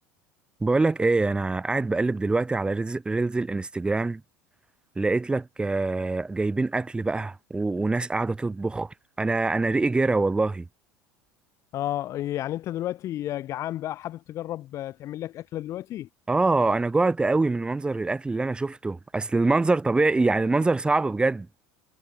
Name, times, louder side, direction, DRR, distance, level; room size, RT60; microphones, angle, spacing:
voice 1, 0.6-4.2 5.0-10.7 16.3-21.5, right 3 dB, 15° right, 3.5 m, -24 dB
voice 2, 11.7-16.1, left 13 dB, 45° left, 2.9 m, -32 dB
figure-of-eight pair, 75°, 7 cm